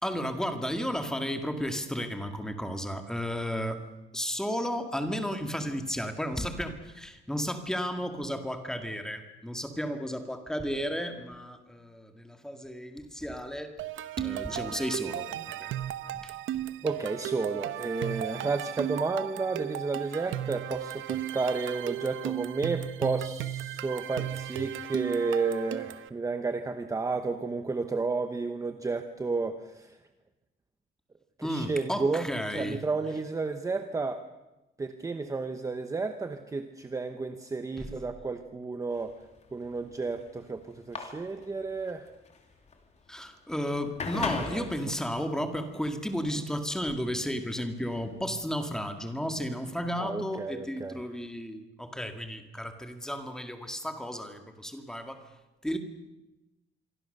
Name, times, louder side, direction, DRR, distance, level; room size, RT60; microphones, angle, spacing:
voice 1, 0.0-3.8 4.1-13.7 14.2-15.7 16.2-16.4 31.4-32.8 37.8-37.9 43.1-55.2 55.6-55.8, equal, 5° left, 6 dB, 2.1 m, -33 dB
sound 1, 13.8-26.1, right 12 dB, 90° right, 1.1 m, -35 dB
voice 2, 16.8-30.0 31.4-32.3 32.5-34.2 34.8-39.1 39.5-42.1 44.5-44.7 50.0-51.0, right 4 dB, 15° right, 8 dB, 1.0 m, -32 dB
sound 2, 38.9-48.8, left 4 dB, 35° left, 3.1 m, -40 dB
27.0 x 23.5 x 6.7 m, 1.0 s
cardioid pair, 175°, 20 cm